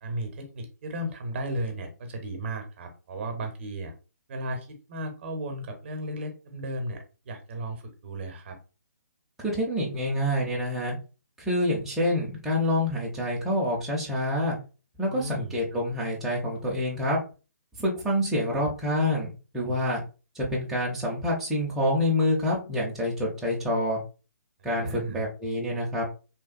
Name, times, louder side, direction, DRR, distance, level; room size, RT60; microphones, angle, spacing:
voice 1, 0.0-3.9 4.3-8.6 15.1-15.6 24.6-25.2, right 1 dB, 45° right, 5 dB, 0.7 m, -35 dB
voice 2, 9.4-11.0 11.4-14.6 15.0-17.2 17.8-20.0 20.3-24.0 24.6-26.1, left 1 dB, 5° right, -5 dB, 0.5 m, -27 dB
2.9 x 2.2 x 2.5 m, 0.33 s
figure-of-eight pair, 135°, 9 cm